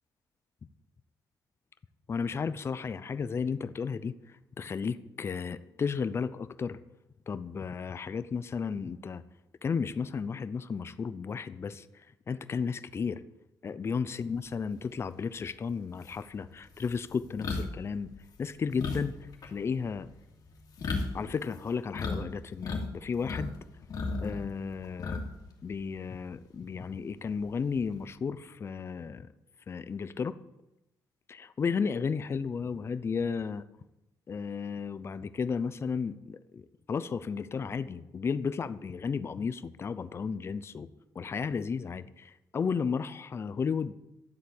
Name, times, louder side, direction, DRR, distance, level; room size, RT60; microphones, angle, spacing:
voice 1, 2.1-4.1 4.6-6.8 7.3-9.2 9.6-11.8 12.3-13.2 13.6-18.1 18.4-19.1 19.4-20.1 21.1-23.5 24.2-25.2 25.6-29.3 29.7-30.4 31.3-33.6 34.3-40.9 41.1-43.9, left 5 dB, 35° left, 14 dB, 0.6 m, -33 dB
sound 1, 15.5-15.6 16.0-22.2 22.5-23.5 23.8-25.5 25.8-26.0 27.4-28.0, left 3 dB, 50° left, 2.6 m, -35 dB
12.0 x 8.1 x 8.6 m, 0.91 s
cardioid pair, 145°, 8 cm